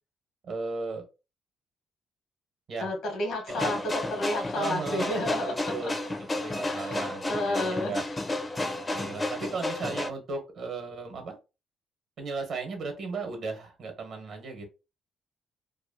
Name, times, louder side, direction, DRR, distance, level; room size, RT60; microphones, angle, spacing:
voice 1, 0.4-1.0 2.7-2.9 3.6-3.7 4.5-6.0 6.4-8.0 8.9-11.4 12.2-14.7, right 4 dB, 65° right, 4 dB, 1.0 m, -36 dB
voice 2, 2.8-5.9 6.6-8.1, left 1 dB, 80° left, 2 dB, 1.1 m, -31 dB
sound 1, 3.5-10.1, left 2 dB, 25° left, 0.4 m, -32 dB
2.8 x 2.2 x 2.6 m, 0.28 s
cardioid pair, 90°, 0 cm